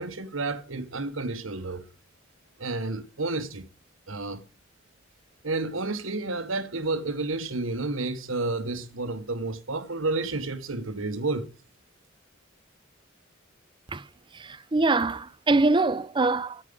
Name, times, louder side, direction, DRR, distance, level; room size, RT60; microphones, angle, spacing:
voice 1, 0.0-1.9 2.6-3.7 4.1-4.4 5.4-11.5, right 3 dB, 90° right, 1.4 m, -30 dB
voice 2, 14.4-16.6, right 3 dB, 25° right, 0.6 m, -24 dB
10.0 x 9.2 x 5.3 m
head